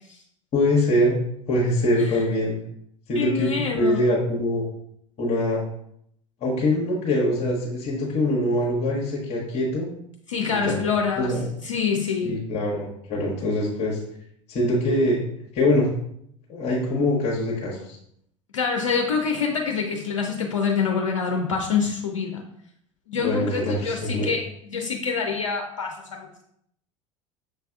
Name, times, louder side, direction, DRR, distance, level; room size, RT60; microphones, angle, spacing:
voice 1, 0.5-1.2 1.5-2.5 3.1-4.6 5.2-5.6 6.4-9.9 10.5-10.8 11.1-11.4 12.2-14.0 14.5-15.2 15.5-15.9 16.5-18.0 23.2-24.3, left 1 dB, 45° left, -4 dB, 1.0 m, -23 dB
voice 2, 3.1-4.0 10.3-11.4 11.6-12.3 18.5-22.4 23.1-26.4, left 5 dB, 80° left, 2 dB, 0.5 m, -26 dB
6.4 x 3.3 x 2.3 m, 0.72 s
figure-of-eight pair, 70°, 16 cm